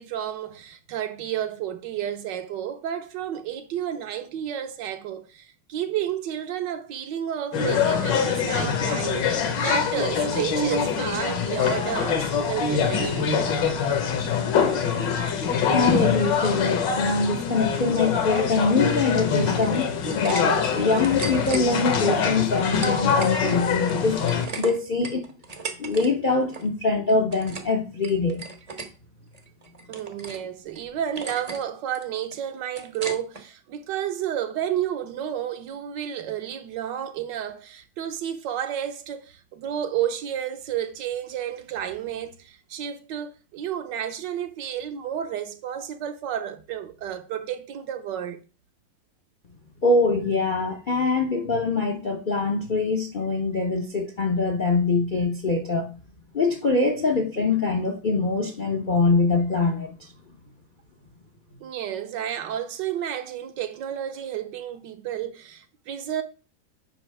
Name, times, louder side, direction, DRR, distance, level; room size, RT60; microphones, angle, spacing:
voice 1, 0.0-13.4 29.9-48.4 61.6-66.2, right 10 dB, 75° right, 1.4 m, -31 dB
sound 1, 7.5-24.5, left 6 dB, 75° left, 1.7 m, -24 dB
voice 2, 15.7-24.2 24.6-25.2 25.8-28.5 49.8-55.9 56.3-60.1, left 3 dB, 55° left, 0.5 m, -24 dB
sound 2, 19.6-20.4 20.7-21.6 22.3-23.4 23.7-26.1 26.3-26.7 27.1-27.7 28.0-28.9 29.3-30.4 30.7-30.8 31.2-31.6 31.9-33.4, right 3 dB, 40° right, 0.5 m, -36 dB
8.9 x 5.4 x 3.3 m
omnidirectional pair, 2.0 m